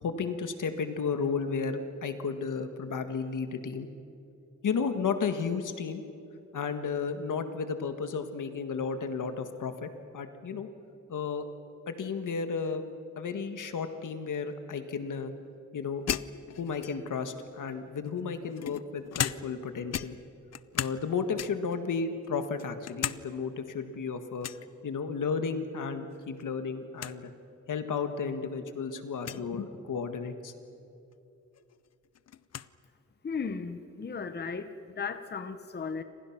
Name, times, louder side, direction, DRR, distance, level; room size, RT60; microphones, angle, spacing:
voice 1, 0.0-3.9 4.6-6.0 6.5-9.9 10.1-10.7 11.1-11.5 11.9-12.8 13.2-15.3 15.7-16.0 16.6-20.2 20.7-24.5 24.8-27.3 27.7-30.5, left 5 dB, 80° left, 8 dB, 1.7 m, -33 dB
sound 1, 16.1-17.2 18.0-19.7 19.9-21.0 21.4-21.8 22.2-23.2 23.5-23.6 24.4-24.7 26.1-26.4 26.7-26.8 27.0-27.2 28.0-28.1 29.2-29.4 31.1-31.2 31.5-32.7, left 10 dB, 55° left, 0.6 m, -36 dB
voice 2, 33.2-36.0, left 5 dB, 35° left, 10 dB, 0.9 m, -36 dB
29.5 x 26.5 x 6.0 m, 2.8 s
wide cardioid pair, 165°, 30 cm